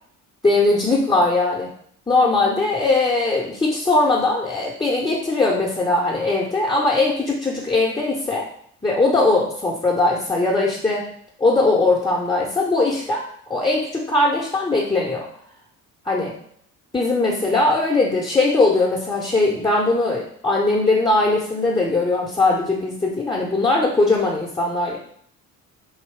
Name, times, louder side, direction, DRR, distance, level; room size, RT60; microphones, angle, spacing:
voice 1, 0.4-1.7 2.1-8.5 8.8-11.0 11.4-13.2 13.5-15.2 16.0-16.4 16.9-25.0, left 2 dB, 10° left, -4 dB, 0.8 m, -20 dB
3.9 x 2.9 x 3.2 m, 0.64 s
figure-of-eight pair, 50°, 45 cm